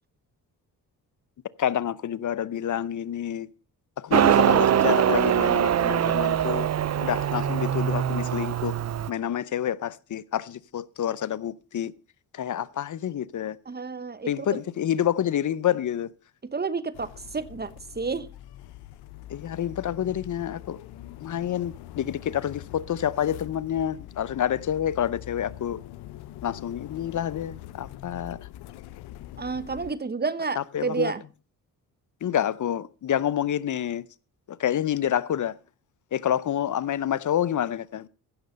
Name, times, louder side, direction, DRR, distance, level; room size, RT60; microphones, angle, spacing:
voice 1, 1.6-3.5 4.0-6.7 7.0-8.8 9.1-11.9 12.3-13.6 14.3-16.1 19.3-20.8 21.2-25.8 26.4-28.5 30.6-31.1 32.2-34.1 34.5-35.6 36.1-38.1, left 10 dB, 50° left, 0.7 m, -28 dB
Motorcycle, 4.1-9.1, right 10 dB, 45° right, 0.6 m, -22 dB
voice 2, 13.7-14.6 16.4-17.7 17.9-18.3 29.4-31.2, right 4 dB, 25° right, 1.1 m, -30 dB
sound 1, 16.9-29.9, left 14 dB, 90° left, 0.7 m, -43 dB
15.5 x 6.6 x 5.2 m
cardioid pair, 65°, 38 cm